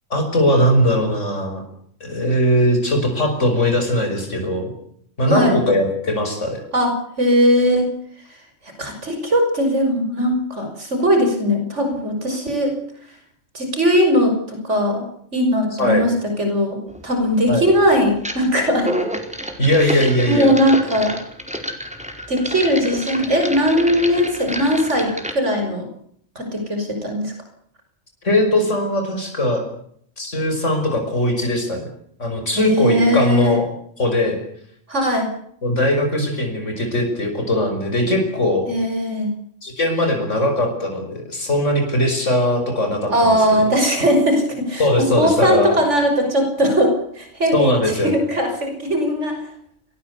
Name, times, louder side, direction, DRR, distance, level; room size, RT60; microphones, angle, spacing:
voice 1, 0.1-1.6 2.0-4.7 5.2-6.6 15.8-16.0 17.5-17.7 19.6-20.5 28.2-29.6 30.2-31.8 32.2-33.7 34.0-34.4 35.6-38.7 39.6-43.4 44.8-45.7 47.5-48.1, left 1 dB, 85° left, 4 dB, 6.2 m, -19 dB
voice 2, 6.7-7.9 8.8-12.7 13.5-15.0 15.3-18.9 19.8-21.2 22.3-25.9 26.4-27.3 32.5-33.6 34.9-35.3 38.7-39.3 43.1-47.8 48.0-49.5, equal, 75° right, 5 dB, 6.2 m, -19 dB
sound 1, 16.9-17.0 18.2-18.5 18.8-25.3, equal, 5° right, 4.5 m, -29 dB
29.0 x 19.5 x 8.3 m, 0.67 s
omnidirectional pair, 1.2 m